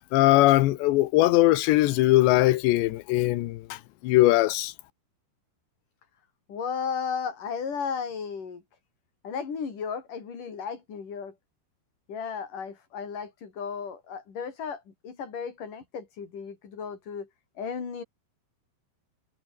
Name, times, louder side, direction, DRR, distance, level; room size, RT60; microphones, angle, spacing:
voice 1, 0.0-4.7, left 17 dB, 75° left, 3.0 m, -21 dB
voice 2, 6.5-8.6 9.2-11.3 12.1-17.3 17.6-18.0, left 6 dB, 45° left, 5.6 m, -34 dB
omnidirectional pair, 5.7 m